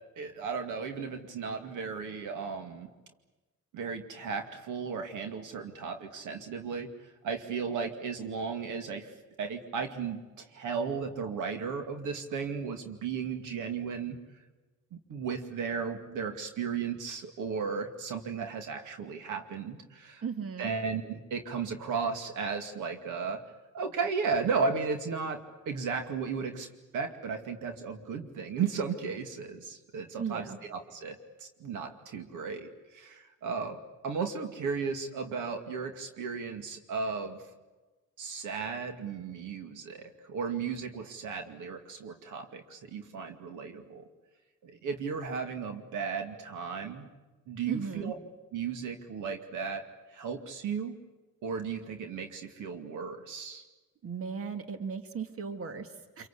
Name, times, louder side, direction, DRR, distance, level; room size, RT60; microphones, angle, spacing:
voice 1, 0.2-2.9 3.7-6.9 7.2-9.1 9.4-14.2 14.9-20.2 20.6-23.4 23.7-26.7 26.9-37.4 38.2-44.0 44.6-47.1 47.5-48.1 48.5-49.8 50.1-51.0 51.4-53.6, right 5 dB, 80° right, 5 dB, 2.3 m, -35 dB
voice 2, 20.2-20.7 30.2-30.6 47.7-48.1 54.0-56.3, right 6 dB, 50° right, 7 dB, 2.2 m, -36 dB
26.0 x 24.0 x 8.4 m, 1.2 s
cardioid pair, 90°, 30 cm